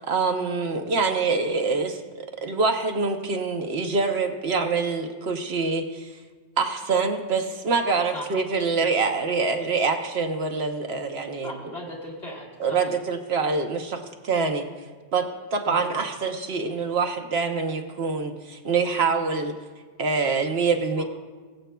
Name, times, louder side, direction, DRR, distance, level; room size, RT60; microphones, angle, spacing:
voice 1, 0.0-6.1 6.6-11.5 12.6-14.7 15.1-19.5 20.0-21.0, right 4 dB, 60° right, 5 dB, 1.0 m, -25 dB
voice 2, 11.4-12.9 15.7-16.0 20.8-21.0, left 1 dB, 55° left, -3 dB, 2.2 m, -38 dB
21.0 x 7.9 x 2.3 m, 1.4 s
omnidirectional pair, 1.2 m